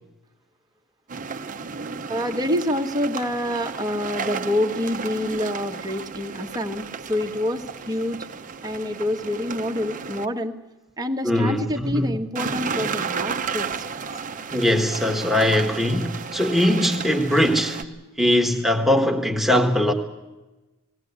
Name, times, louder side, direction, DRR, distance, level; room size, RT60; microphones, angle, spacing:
sound 1, 1.1-10.2 12.3-17.8, right 5 dB, 35° right, 0.8 m, -33 dB
voice 1, 2.1-8.2 8.6-10.5 11.0-13.8, left 1 dB, 15° right, 1.3 m, -27 dB
voice 2, 11.2-12.1 14.5-17.8 18.2-19.9, left 1 dB, ahead, 1.6 m, -21 dB
19.0 x 17.0 x 9.5 m
head